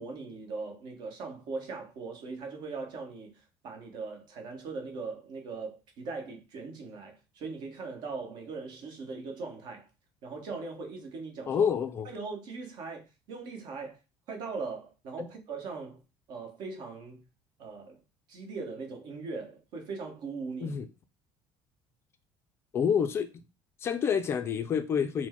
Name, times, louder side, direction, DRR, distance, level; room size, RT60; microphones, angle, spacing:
voice 1, 0.0-9.9 10.2-11.7 12.0-14.0 14.3-16.0 16.3-17.2 17.6-18.0 18.3-20.8, right 4 dB, 60° right, 1.1 m, -40 dB
voice 2, 11.5-12.1 15.2-15.3 20.6-20.9 22.7-23.3 23.8-25.3, left 7 dB, 30° left, 0.4 m, -28 dB
4.4 x 2.1 x 4.3 m
cardioid pair, 155°, 8 cm